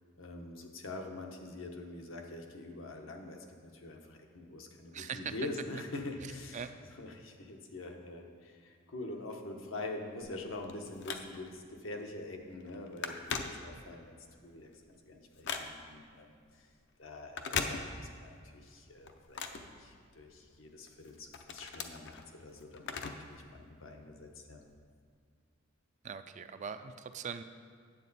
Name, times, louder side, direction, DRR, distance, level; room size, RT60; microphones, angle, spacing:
voice 1, 0.2-6.7 7.0-14.2 14.4-14.7 15.0-16.7 17.0-17.8 18.1-23.0 23.3-24.6, left 2 dB, 80° left, 2 dB, 1.0 m, -45 dB
voice 2, 4.9-5.3 6.2-6.7 26.0-27.4, right 7 dB, 40° right, 9 dB, 0.4 m, -41 dB
Telephone, 10.2-11.7 12.1-12.3 12.6-14.1 14.5-16.1 17.2-18.3 18.7-20.4 20.9-23.4 23.7-23.8 24.7-24.8, left 5 dB, 65° left, 0.6 m, -40 dB
9.1 x 7.6 x 4.1 m, 2.1 s
head